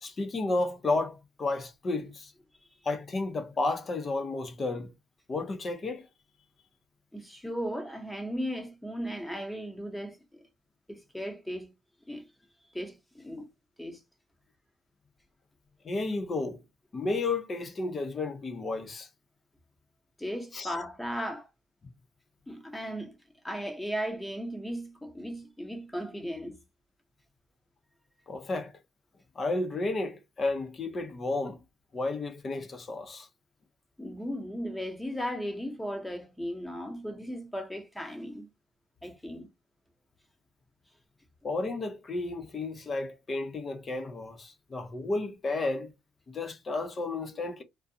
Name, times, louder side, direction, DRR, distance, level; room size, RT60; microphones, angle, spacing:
voice 1, 0.0-2.3 2.8-4.9 5.3-6.1 15.8-16.6 16.9-19.1 20.5-20.7 28.3-28.7 29.3-31.6 31.9-33.3 41.4-45.9 46.3-47.6, left 2 dB, 40° left, 0.7 m, -32 dB
voice 2, 7.1-10.4 10.9-11.7 12.1-12.2 12.7-13.5 13.8-14.0 20.2-21.5 22.5-23.2 23.4-26.6 34.0-38.5 39.0-39.5, equal, 10° left, 0.9 m, -36 dB
2.5 x 2.2 x 2.6 m
supercardioid pair, 70°, 0 cm